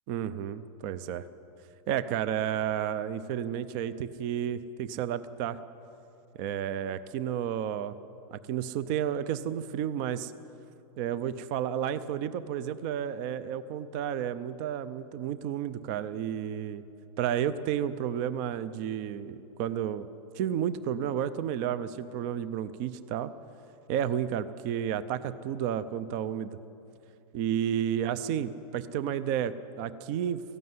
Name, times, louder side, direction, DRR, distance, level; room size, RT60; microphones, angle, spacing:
voice 1, 0.1-1.3 1.9-5.6 6.3-7.9 8.3-10.3 11.0-16.8 17.2-20.1 20.3-23.3 23.9-26.6 27.3-30.4, right 9 dB, 30° right, 14 dB, 0.6 m, -31 dB
19.0 x 15.0 x 9.6 m, 2.7 s
supercardioid pair, 165°, 18 cm